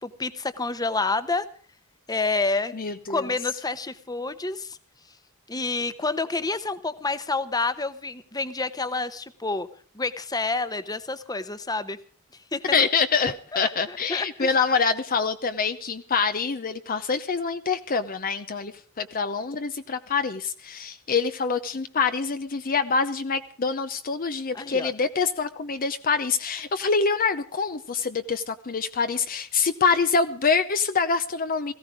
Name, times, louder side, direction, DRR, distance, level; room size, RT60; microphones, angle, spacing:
voice 1, 0.0-1.5 2.1-2.7 3.1-4.8 5.5-9.7 9.9-12.0 12.5-12.6 13.5-14.5 24.5-24.9, left 3 dB, 20° left, 13 dB, 1.0 m, -28 dB
voice 2, 2.7-3.3 12.7-18.7 19.0-31.7, left 5 dB, 40° left, 10 dB, 0.7 m, -25 dB
18.0 x 16.0 x 4.9 m, 0.42 s
head